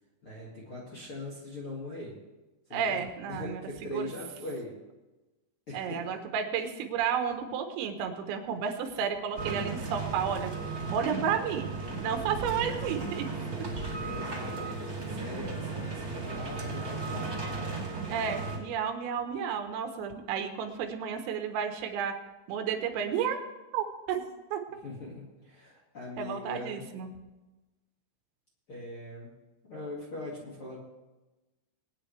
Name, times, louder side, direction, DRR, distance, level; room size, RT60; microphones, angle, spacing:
voice 1, 0.2-2.1 2.7-3.0 3.3-4.7 5.7-6.0 13.4-17.7 24.8-26.8 28.7-29.3 29.6-30.8, left 2 dB, 45° left, -4 dB, 1.7 m, -41 dB
voice 2, 2.7-4.1 5.7-10.5 10.9-11.7 12.0-13.7 18.1-22.1 22.5-23.4 23.7-24.2 24.5-24.6 26.2-27.1, right 7 dB, 90° right, 5 dB, 3.9 m, -32 dB
sound 1, 9.3-18.6, right 3 dB, 30° right, 1.7 m, -35 dB
22.5 x 9.7 x 3.3 m, 1.1 s
omnidirectional pair, 5.8 m